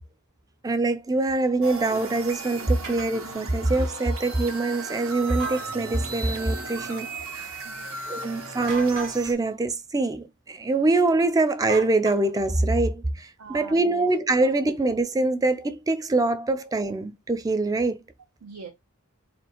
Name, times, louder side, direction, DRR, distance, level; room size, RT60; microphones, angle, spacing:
voice 1, 0.6-7.6 8.1-18.0, right 2 dB, 15° right, 0.3 m, -24 dB
sound 1, 1.6-9.3, right 3 dB, 70° right, 1.1 m, -36 dB
sound 2, 2.8-3.1 5.3-5.7 8.6-9.2 11.7-12.5, right 4 dB, 50° right, 1.6 m, -36 dB
voice 2, 7.6-8.5 13.4-14.1 18.4-18.7, right 4 dB, 90° right, 0.8 m, -44 dB
4.2 x 3.2 x 2.9 m
head